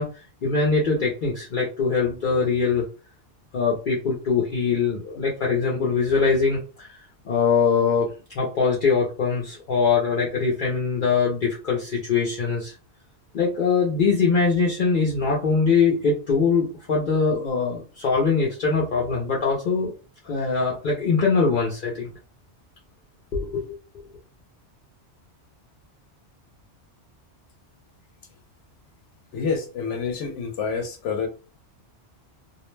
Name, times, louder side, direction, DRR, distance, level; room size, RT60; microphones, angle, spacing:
voice 1, 0.0-2.9 3.5-6.9 7.3-8.1 8.3-12.7 13.3-19.9 20.2-22.1 23.3-24.0, left 5 dB, 55° left, 0.7 m, -22 dB
voice 2, 29.3-31.3, left 5 dB, 80° left, 0.9 m, -27 dB
2.4 x 2.0 x 3.1 m
omnidirectional pair, 1.2 m